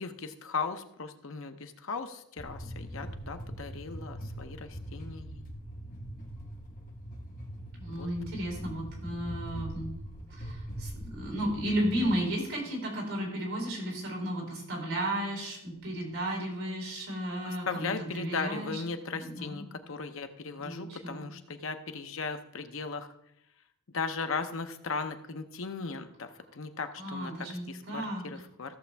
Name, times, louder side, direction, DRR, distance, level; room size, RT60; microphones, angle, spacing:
voice 1, 0.0-5.4 8.0-8.1 17.4-23.1 23.9-28.8, left 4 dB, 65° left, 8 dB, 0.8 m, -37 dB
sound 1, 2.4-12.2, equal, 40° left, 1.6 m, -42 dB
voice 2, 7.8-9.9 10.3-18.8 19.1-19.7 20.6-21.2 27.0-28.2, right 1 dB, 70° right, 0 dB, 4.3 m, -34 dB
14.5 x 7.0 x 3.4 m, 0.79 s
head